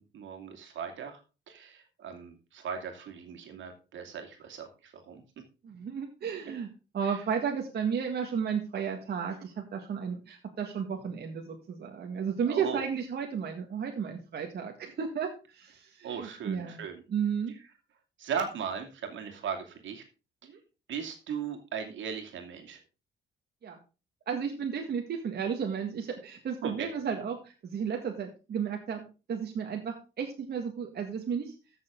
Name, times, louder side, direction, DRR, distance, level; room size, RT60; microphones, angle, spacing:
voice 1, 0.1-1.2 1.5-5.2 7.0-7.2 12.5-12.8 16.0-17.0 18.2-20.0 20.9-22.8 26.6-26.9, right 7 dB, 75° right, 5 dB, 2.5 m, -38 dB
voice 2, 5.6-6.7 6.9-16.8 17.1-17.5 20.5-20.6 23.6-23.8 24.3-31.5, right 7 dB, 55° right, 2 dB, 1.8 m, -33 dB
14.0 x 6.9 x 3.7 m, 0.32 s
cardioid pair, 90°, 20 cm